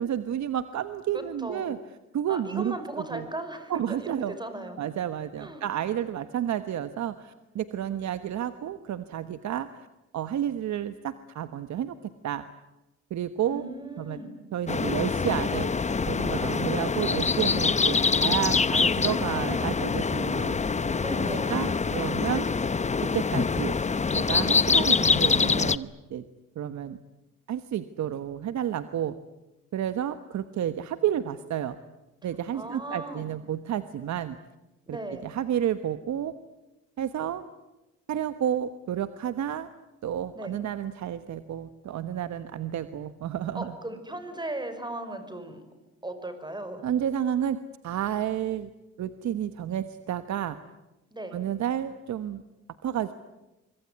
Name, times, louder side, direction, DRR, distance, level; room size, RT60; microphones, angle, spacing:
voice 1, 0.0-1.8 2.1-2.7 3.1-3.3 3.7-4.4 4.8-9.9 10.1-12.0 12.2-12.4 13.1-13.6 14.0-14.2 14.5-15.7 16.1-20.6 21.2-22.5 23.1-23.7 24.1-26.2 26.5-27.0 27.5-29.1 29.7-31.8 32.2-34.4 34.9-35.0 35.2-36.3 37.0-37.4 38.1-39.7 40.0-43.7 46.8-47.6 47.8-48.7 49.0-50.6 51.3-52.4 52.8-53.1, right 10 dB, 65° right, 11 dB, 1.3 m, -30 dB
voice 2, 1.1-1.7 2.3-4.1 4.4-4.8 5.4-5.6 13.4-14.3 21.0-21.5 32.5-33.3 34.9-35.3 40.3-40.5 43.5-45.6 46.0-46.8 51.1-51.3, right 1 dB, 15° right, 9 dB, 5.7 m, -37 dB
sound 1, 14.7-25.8, left 5 dB, 25° left, 0.9 m, -25 dB
25.5 x 24.5 x 9.6 m, 1.0 s
cardioid pair, 90°, 30 cm